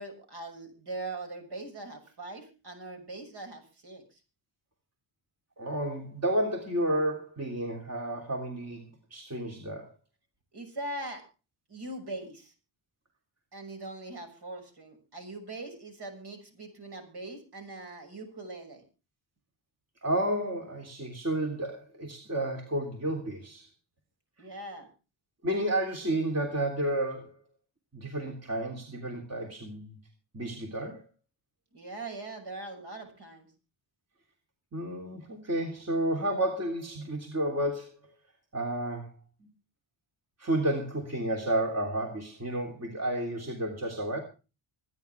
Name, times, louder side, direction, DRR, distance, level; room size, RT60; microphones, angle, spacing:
voice 1, 0.0-4.2 10.5-11.2 11.7-12.5 13.5-18.8 24.4-24.9 31.7-33.5, right 2 dB, 55° right, 5 dB, 6.4 m, -41 dB
voice 2, 5.6-9.9 20.0-23.7 25.4-27.3 27.9-30.0 30.3-31.0 34.7-37.9 38.5-39.1 40.4-44.2, right 1 dB, 30° right, 1 dB, 3.3 m, -31 dB
25.0 x 10.0 x 3.4 m, 0.33 s
cardioid pair, 105°, 48 cm